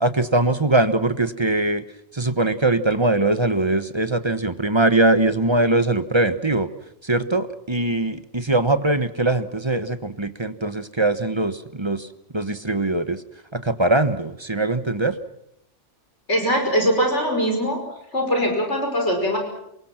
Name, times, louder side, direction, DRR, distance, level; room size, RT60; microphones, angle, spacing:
voice 1, 0.0-1.8 2.1-6.7 7.0-12.1 12.3-13.2 13.5-15.2, right 2 dB, 25° right, 11 dB, 1.1 m, -21 dB
voice 2, 16.3-17.8 18.1-19.4, equal, 65° left, 2 dB, 5.8 m, -21 dB
28.0 x 23.5 x 6.0 m, 0.81 s
omnidirectional pair, 1.3 m